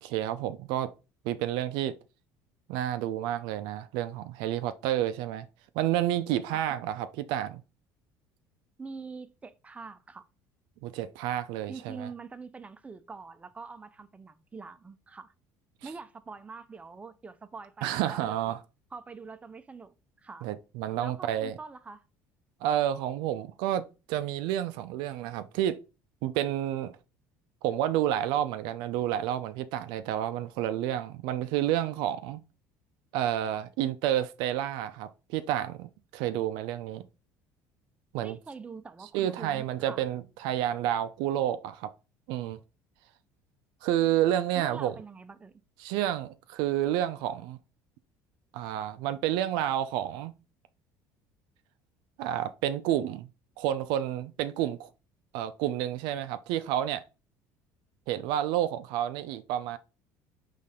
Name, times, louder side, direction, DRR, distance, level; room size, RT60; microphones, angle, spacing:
voice 1, 0.0-0.9 1.2-1.9 2.7-5.5 5.7-7.6 10.8-12.1 17.8-18.6 20.4-21.5 22.6-25.8 26.2-26.9 27.6-32.4 33.1-37.0 38.1-38.4 39.1-41.9 42.3-42.6 43.8-44.9 45.8-47.6 48.5-50.3 52.2-53.3 53.6-54.9 55.3-57.0 58.1-59.8, right 12 dB, 75° right, 0.4 m, -30 dB
voice 2, 8.8-10.2 11.7-15.3 15.8-18.6 18.9-20.5 21.0-22.0 38.2-40.0 44.6-45.6, right 4 dB, 15° right, 0.4 m, -44 dB
4.1 x 3.2 x 3.6 m
supercardioid pair, 100°, 8 cm